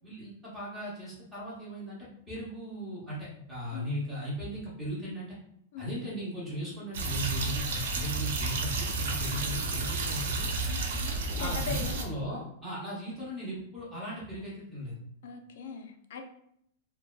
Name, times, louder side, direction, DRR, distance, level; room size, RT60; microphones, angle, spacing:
voice 1, 0.0-5.4 5.8-10.7 11.3-14.9, equal, 10° right, -7 dB, 0.8 m, -37 dB
sound 1, 6.9-12.0, right 3 dB, 65° right, 0.4 m, -31 dB
voice 2, 10.7-12.0 15.2-16.2, left 5 dB, 60° left, 6 dB, 0.4 m, -40 dB
2.6 x 2.2 x 2.3 m, 0.72 s
supercardioid pair, 175°, 0 cm